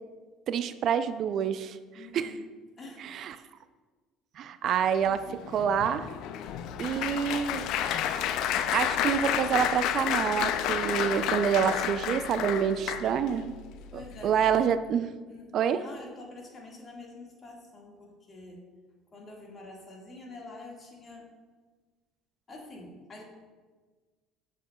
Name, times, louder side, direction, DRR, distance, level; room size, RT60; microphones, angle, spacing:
voice 1, 0.5-1.8 2.1-2.3 3.1-3.4 4.4-6.1 6.8-7.6 8.7-13.5 13.9-15.1 15.5-15.8, right 8 dB, 55° right, 11 dB, 0.3 m, -27 dB
voice 2, 1.9-2.5 2.8-3.1 13.9-14.5 15.3-18.6 19.1-21.3 22.5-23.2, left 2 dB, 35° left, -1 dB, 1.7 m, -46 dB
Applause, 5.1-13.4 14.0-14.3 14.5-14.7, left 10 dB, 65° left, 0.3 m, -30 dB
sound 1, 6.4-14.4, left 1 dB, 20° left, 1.0 m, -49 dB
7.3 x 6.4 x 2.2 m, 1.4 s
hypercardioid pair, 70°, 0 cm